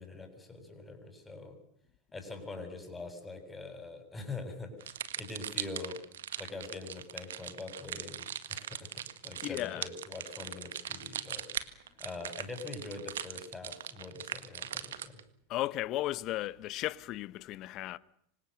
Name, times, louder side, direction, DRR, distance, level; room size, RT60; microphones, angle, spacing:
voice 1, 0.0-1.6 2.1-6.0 6.4-15.2, left 3 dB, 15° left, 7.8 m, -44 dB
sound 1, 4.8-15.2, right 10 dB, 65° right, 1.8 m, -40 dB
voice 2, 9.4-9.9 15.5-18.0, left 16 dB, 40° left, 1.1 m, -35 dB
26.0 x 26.0 x 6.8 m
figure-of-eight pair, 85°, 0 cm